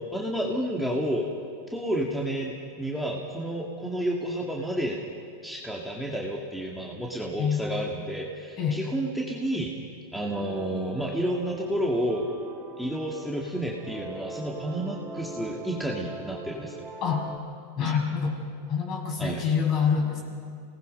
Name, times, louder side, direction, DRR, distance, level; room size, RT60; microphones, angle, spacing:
voice 1, 0.1-1.3 1.7-5.0 5.4-9.7 10.1-12.3 12.8-16.7 19.2-19.4, right 1 dB, ahead, -2 dB, 2.2 m, -30 dB
sound 1, 10.3-17.4, right 2 dB, 20° right, 3.6 m, -41 dB
voice 2, 17.8-18.4 18.7-20.2, left 6 dB, 40° left, 1 dB, 6.2 m, -26 dB
26.5 x 19.0 x 5.4 m, 2.3 s
hypercardioid pair, 120°, 0 cm